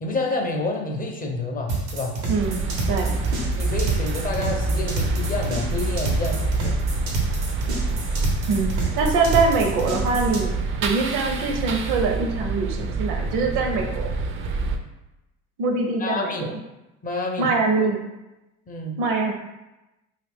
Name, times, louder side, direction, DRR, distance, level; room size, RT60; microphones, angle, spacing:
voice 1, 0.0-2.2 3.6-6.8 16.0-16.5 17.0-17.5 18.7-19.0, left 3 dB, 25° left, 2 dB, 0.5 m, -28 dB
sound 1, 1.7-10.4, right 4 dB, 90° right, 1.0 m, -29 dB
sound 2, 2.3-14.8, right 3 dB, 40° right, 0.4 m, -26 dB
voice 2, 2.3-3.2 8.5-8.7 9.0-10.5 10.8-14.1 15.6-16.5 17.4-18.0 19.0-19.3, right 3 dB, 65° right, 3 dB, 0.7 m, -23 dB
2.7 x 2.4 x 3.4 m, 0.98 s
supercardioid pair, 85°, 34 cm